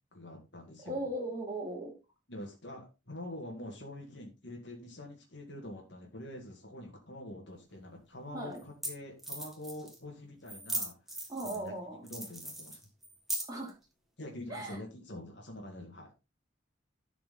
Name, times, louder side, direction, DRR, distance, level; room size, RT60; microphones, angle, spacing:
voice 1, 0.1-1.1 2.3-11.7 12.0-12.8 14.2-16.1, left 1 dB, 65° left, 0 dB, 2.1 m, -45 dB
voice 2, 0.8-1.9 8.3-8.6 11.3-12.0 13.5-13.7 14.5-14.8, right 1 dB, 20° right, -1 dB, 2.8 m, -37 dB
sound 1, 7.7-7.8 8.6-8.7 8.8-8.9 9.2-10.0 10.5-11.7 12.1-13.7, right 1 dB, ahead, 1.6 m, -38 dB
11.0 x 4.9 x 3.8 m, 0.27 s
head